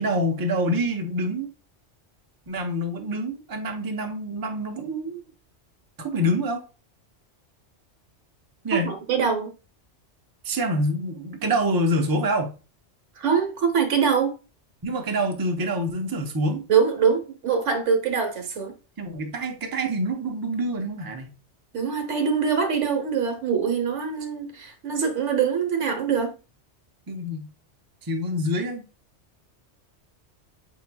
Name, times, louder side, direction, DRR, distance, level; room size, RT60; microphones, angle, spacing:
voice 1, 0.0-1.5 2.5-5.2 6.0-6.6 8.6-8.9 10.4-12.5 14.8-16.6 19.0-21.3 27.1-27.5 28.0-28.8, equal, 25° right, 0.6 m, -26 dB
voice 2, 8.7-9.5 13.2-14.3 16.7-18.7 21.7-26.3, right 6 dB, 85° right, 1.3 m, -23 dB
4.7 x 4.4 x 2.2 m
omnidirectional pair, 1.2 m